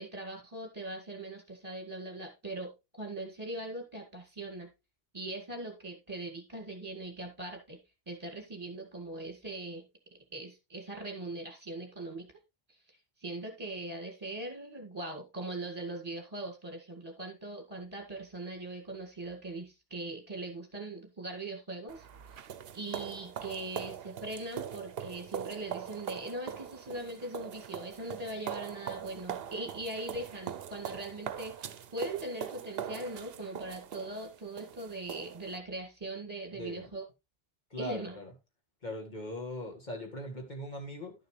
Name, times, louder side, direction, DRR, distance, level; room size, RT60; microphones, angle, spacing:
voice 1, 0.0-2.7 3.0-4.7 5.1-7.8 8.1-9.8 10.3-12.3 13.2-22.1 22.7-37.0 37.8-38.2, right 2 dB, 25° right, 1.9 m, -40 dB
sound 1, 21.9-35.6, right 9 dB, 70° right, 0.9 m, -42 dB
voice 2, 36.5-36.9 37.7-38.3 38.8-41.1, left 1 dB, 45° left, 2.1 m, -40 dB
11.5 x 6.7 x 3.2 m
omnidirectional pair, 1.0 m